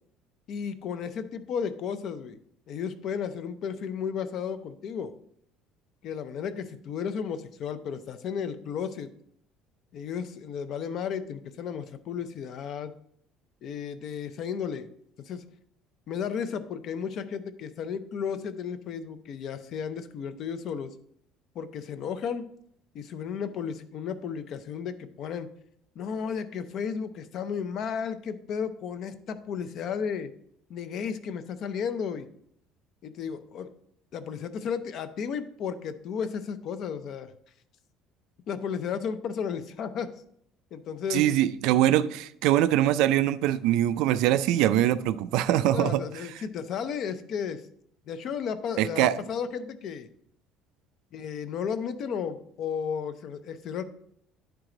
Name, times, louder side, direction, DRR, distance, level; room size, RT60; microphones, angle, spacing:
voice 1, 0.5-2.4 2.7-5.1 6.0-9.1 9.9-12.9 13.6-14.9 15.2-15.4 16.1-20.9 21.5-22.5 22.9-25.5 26.0-30.3 30.7-32.3 33.0-33.7 34.1-37.3 38.5-40.1 40.7-41.3 45.7-47.6 48.1-50.1 51.1-53.8, left 7 dB, 40° left, 11 dB, 0.5 m, -33 dB
voice 2, 41.1-46.0 48.8-49.1, right 13 dB, 65° right, 14 dB, 0.3 m, -23 dB
10.5 x 4.6 x 3.8 m, 0.69 s
cardioid pair, 175°, 0 cm